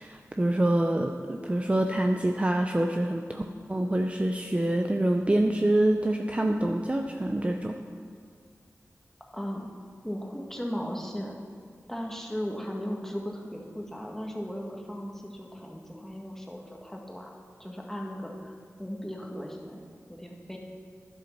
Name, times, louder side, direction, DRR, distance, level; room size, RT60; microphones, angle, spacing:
voice 1, 0.0-3.4 3.7-7.8, right 1 dB, 25° right, 3 dB, 0.6 m, -26 dB
voice 2, 9.3-9.7 10.0-11.3 11.9-19.8 20.2-20.6, equal, 5° left, -1 dB, 1.7 m, -37 dB
10.5 x 8.1 x 5.9 m, 2.1 s
cardioid pair, 50°, 5 cm